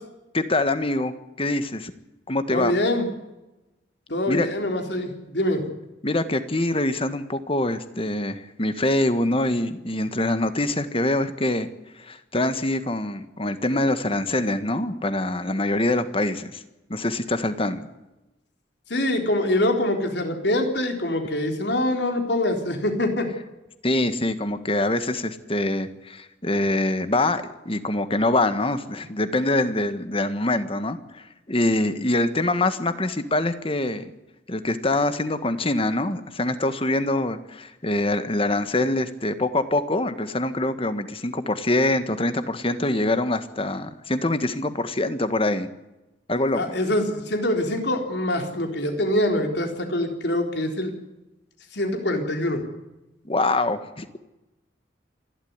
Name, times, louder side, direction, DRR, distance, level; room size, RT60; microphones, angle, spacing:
voice 1, 0.3-1.9 2.3-2.7 4.3-4.5 6.0-11.7 12.0-16.6 16.9-17.9 23.8-34.1 34.5-45.7 46.3-46.8 53.2-54.2, left 2 dB, 30° left, 11 dB, 1.5 m, -24 dB
voice 2, 2.5-3.1 4.1-5.6 18.9-23.3 46.5-50.9 51.7-52.6, left 1 dB, 65° left, 4 dB, 4.0 m, -24 dB
27.5 x 12.5 x 9.6 m, 1.0 s
head